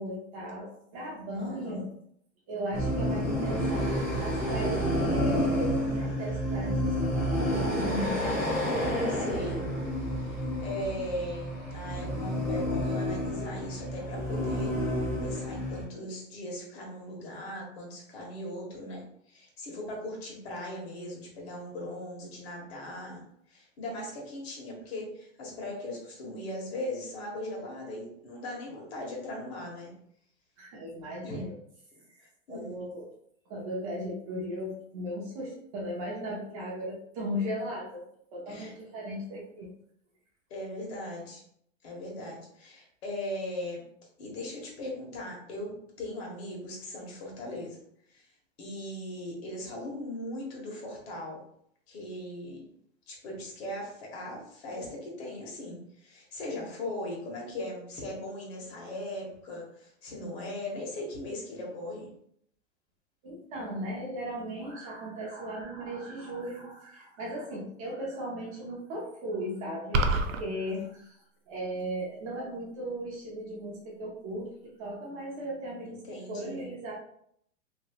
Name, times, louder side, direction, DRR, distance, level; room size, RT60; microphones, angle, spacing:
voice 1, 0.0-1.9 2.5-6.9 7.5-8.5 30.6-31.5 32.5-33.1 33.5-38.1 38.3-39.7 63.2-76.0 76.3-76.9, equal, 25° right, -3 dB, 0.6 m, -37 dB
voice 2, 1.4-1.9 9.1-9.6 10.2-14.7 15.2-23.2 23.5-29.9 31.2-31.4 32.5-32.7 38.5-38.7 40.5-41.4 41.8-43.8 44.2-47.8 48.1-48.3 48.6-51.4 51.9-52.6 53.1-62.1 75.9-76.7, left 1 dB, 55° left, -1 dB, 1.4 m, -39 dB
sound 1, 2.7-15.8, equal, 10° left, 0.4 m, -30 dB
sound 2, 69.9-70.4, right 2 dB, 90° right, 0.6 m, -25 dB
3.0 x 2.7 x 2.9 m, 0.69 s
supercardioid pair, 160°, 38 cm